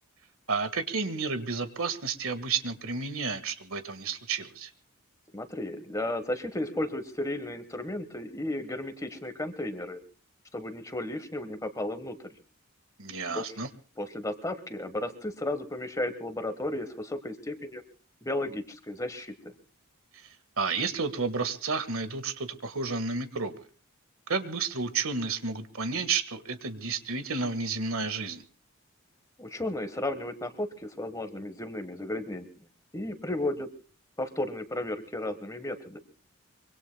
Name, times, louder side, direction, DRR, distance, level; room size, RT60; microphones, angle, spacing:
voice 1, 0.5-4.7 13.0-13.7 20.6-23.6 24.3-28.4, right 4 dB, 70° right, 11 dB, 1.6 m, -31 dB
voice 2, 5.3-10.0 10.5-12.3 13.3-13.5 14.0-17.8 18.2-19.3 29.4-32.5 32.9-33.7 34.2-36.0, left 1 dB, 15° left, 10 dB, 1.2 m, -34 dB
25.0 x 24.0 x 2.2 m, 0.38 s
head